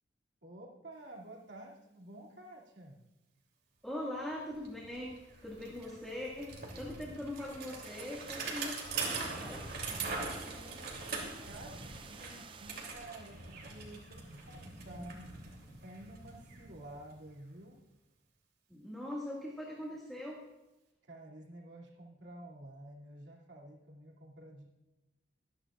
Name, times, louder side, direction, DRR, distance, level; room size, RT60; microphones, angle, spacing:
voice 1, 0.4-3.1 8.4-9.3 9.6-15.3 15.8-17.8 21.0-24.7, right 1 dB, 70° right, -3 dB, 2.6 m, -51 dB
voice 2, 3.8-5.2 5.4-8.7 9.1-9.6 18.7-20.4, left 1 dB, ahead, -5 dB, 1.9 m, -41 dB
Bicycle, 4.2-4.3 4.5-17.4, right 4 dB, 55° right, 3.0 m, -43 dB
sound 1, 7.8-13.0, right 6 dB, 25° right, 0.5 m, -53 dB
25.0 x 10.5 x 2.5 m, 0.99 s
head